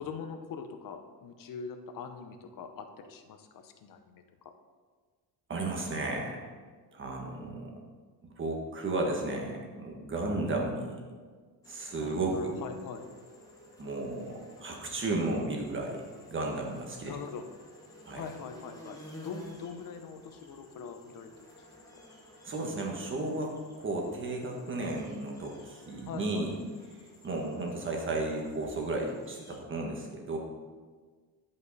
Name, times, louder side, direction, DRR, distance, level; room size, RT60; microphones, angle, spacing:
voice 1, 0.0-4.5 12.0-13.1 17.0-17.5 18.1-21.3 21.6-22.0 26.1-26.5, left 6 dB, 50° left, 7 dB, 0.8 m, -43 dB
voice 2, 5.5-6.4 6.9-7.7 8.2-11.0 11.7-12.6 13.8-17.1 18.0-18.2 22.4-26.5 27.0-30.4, right 2 dB, 30° right, 0 dB, 1.3 m, -34 dB
sound 1, 11.6-29.6, left 1 dB, 10° left, 1.0 m, -53 dB
10.5 x 5.4 x 4.0 m, 1.5 s
cardioid pair, 165°, 42 cm